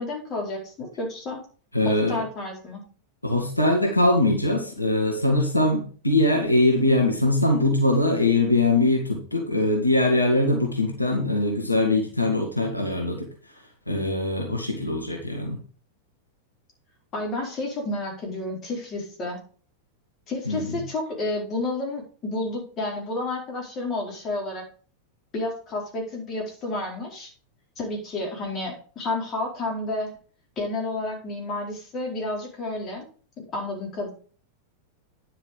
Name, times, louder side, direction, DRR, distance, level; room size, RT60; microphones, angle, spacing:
voice 1, 0.0-1.4 1.8-2.8 17.1-19.4 20.3-24.6 25.3-27.3 27.8-30.1 30.6-33.1 33.5-34.1, left 2 dB, 30° left, 0 dB, 4.3 m, -30 dB
voice 2, 1.7-2.2 3.2-13.3 13.9-15.6 20.5-20.8, left 2 dB, 85° left, 1 dB, 1.9 m, -22 dB
10.0 x 5.7 x 5.2 m, 0.41 s
figure-of-eight pair, 90°, 0 cm